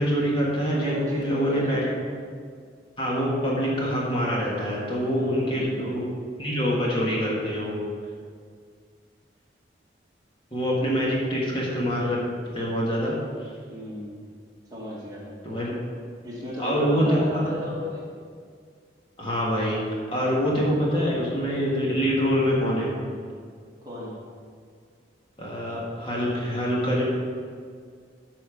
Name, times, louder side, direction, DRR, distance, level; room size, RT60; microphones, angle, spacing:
voice 1, 0.0-1.9 3.0-6.1 6.4-7.8 10.5-12.2 12.5-13.1 15.4-15.7 16.6-17.4 19.2-22.9 25.4-27.0, equal, 30° left, -5 dB, 1.7 m, -25 dB
voice 2, 0.7-1.9 5.1-6.0 13.7-14.3 14.7-15.7 16.2-18.1 23.8-24.1, left 1 dB, 20° right, -6 dB, 1.8 m, -34 dB
13.0 x 4.4 x 5.0 m, 2.1 s
head